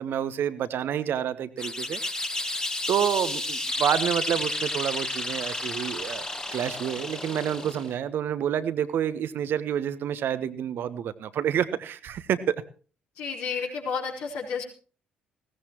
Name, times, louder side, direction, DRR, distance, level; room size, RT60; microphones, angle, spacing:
voice 1, 0.0-2.0 2.5-6.2 6.5-12.6, right 9 dB, 50° right, 13 dB, 1.1 m, -28 dB
sound 1, 1.6-7.9, left 2 dB, 15° left, 1.7 m, -31 dB
voice 2, 13.2-14.6, left 5 dB, 60° left, -1 dB, 4.5 m, -31 dB
20.5 x 17.0 x 3.1 m, 0.40 s
figure-of-eight pair, 45°, 5 cm